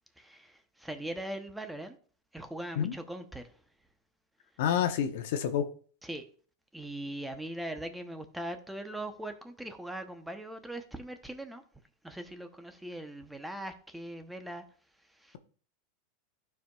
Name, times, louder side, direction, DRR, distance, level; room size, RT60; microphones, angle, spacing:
voice 1, 0.2-2.0 2.3-3.5 6.0-6.2 6.7-11.6 12.0-14.6 15.2-15.4, right 1 dB, 5° right, 0.8 m, -40 dB
voice 2, 4.6-5.6, left 9 dB, 75° left, 0.9 m, -28 dB
12.0 x 4.7 x 2.3 m
supercardioid pair, 125°, 0 cm